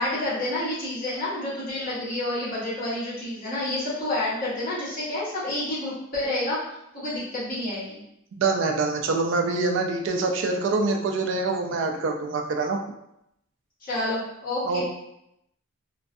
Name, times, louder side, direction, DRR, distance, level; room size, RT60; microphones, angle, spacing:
voice 1, 0.0-6.6 6.9-8.0 13.8-14.8, left 1 dB, 45° left, -9 dB, 1.0 m, -29 dB
voice 2, 8.4-12.8 14.7-14.8, right 3 dB, 65° right, 3 dB, 0.3 m, -25 dB
2.4 x 2.2 x 2.5 m, 0.80 s
head